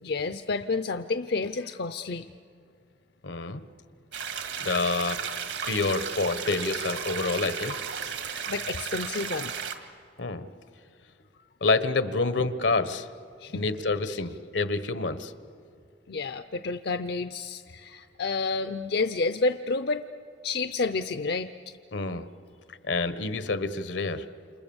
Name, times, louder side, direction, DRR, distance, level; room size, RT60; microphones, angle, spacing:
voice 1, 0.0-2.3 8.5-9.5 13.4-13.6 14.0-14.4 16.1-20.0 20.4-21.7, left 3 dB, 60° left, 10 dB, 0.6 m, -30 dB
voice 2, 3.2-3.6 4.6-5.2 5.6-7.8 10.2-10.5 11.6-13.1 13.5-15.3 21.9-22.3 22.8-24.2, left 3 dB, 80° left, 12 dB, 1.2 m, -27 dB
sound 1, 4.1-9.7, right 6 dB, 80° right, 2.2 m, -34 dB
29.0 x 27.5 x 7.1 m, 2.4 s
head